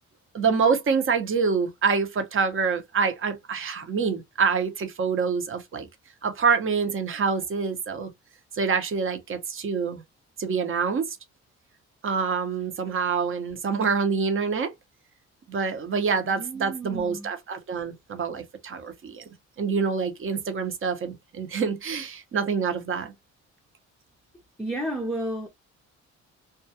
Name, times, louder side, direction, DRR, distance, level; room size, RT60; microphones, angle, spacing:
voice 1, 0.3-5.9 6.2-8.1 8.5-10.0 10.4-11.2 12.0-14.7 15.5-19.2 19.6-23.1, right 5 dB, 45° right, 0.8 m, -26 dB
voice 2, 16.2-17.3 24.6-25.5, right 1 dB, ahead, 0.5 m, -32 dB
2.3 x 2.2 x 2.7 m
cardioid pair, 90°, 30 cm